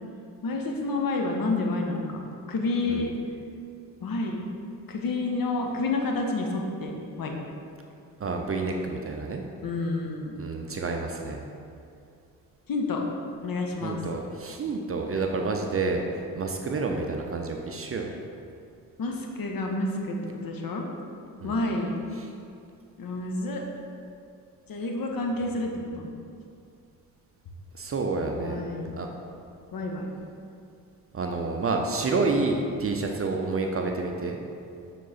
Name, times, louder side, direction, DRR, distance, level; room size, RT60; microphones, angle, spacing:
voice 1, 0.4-3.1 4.0-4.5 4.9-7.3 9.6-10.3 12.7-13.0 13.4-14.0 19.0-20.2 20.4-20.8 21.4-21.9 23.0-23.6 24.7-26.1 28.3-29.0 29.7-30.1, left 2 dB, 45° left, 1 dB, 1.0 m, -29 dB
voice 2, 8.2-9.4 10.4-11.4 13.8-16.0 16.4-18.1 21.4-21.6 22.2-22.3 27.7-28.6 29.0-29.1 31.1-34.4, right 3 dB, 30° right, 2 dB, 0.6 m, -29 dB
6.4 x 3.9 x 4.2 m, 2.5 s
hypercardioid pair, 45°, 47 cm